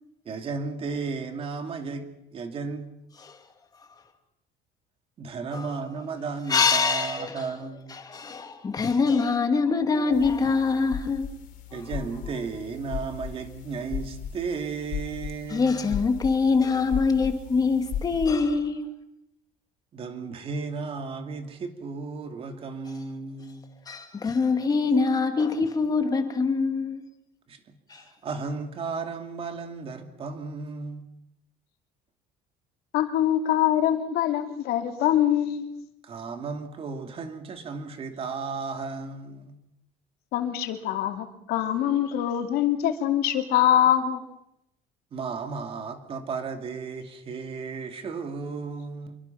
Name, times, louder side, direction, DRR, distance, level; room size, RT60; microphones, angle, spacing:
voice 1, 0.2-2.1 2.3-2.9 5.2-7.9 11.7-15.9 19.9-23.7 27.5-27.6 27.9-31.0 36.0-39.5 45.1-49.2, right 4 dB, 35° right, 2.6 m, -34 dB
voice 2, 6.5-7.5 7.9-11.3 11.7-11.9 15.5-18.9 23.9-27.0 27.9-28.0, left 4 dB, 25° left, 2.5 m, -24 dB
sound 1, 10.1-18.3, left 8 dB, 55° left, 3.9 m, -37 dB
voice 3, 32.9-35.7 40.3-44.2, left 11 dB, 75° left, 2.7 m, -24 dB
26.5 x 23.5 x 5.9 m
cardioid pair, 165°, 16 cm